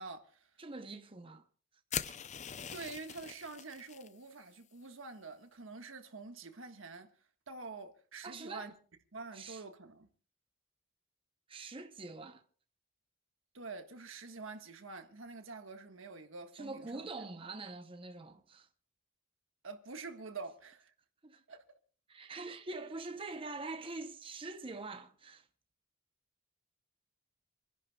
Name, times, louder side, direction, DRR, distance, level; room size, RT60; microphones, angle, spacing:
voice 1, 0.0-0.4 2.1-2.3 2.7-7.1 7.5-8.7 9.1-10.1 13.5-17.0 19.6-20.9 21.5-21.6, right 3 dB, 75° right, 1.5 m, -47 dB
voice 2, 0.6-1.5 8.2-8.7 9.3-9.6 11.5-12.4 16.5-18.7 21.2-21.4 22.1-25.5, right 3 dB, 25° right, 0.8 m, -44 dB
sound 1, 1.9-4.1, left 8 dB, 35° left, 0.5 m, -42 dB
28.0 x 11.0 x 2.3 m
head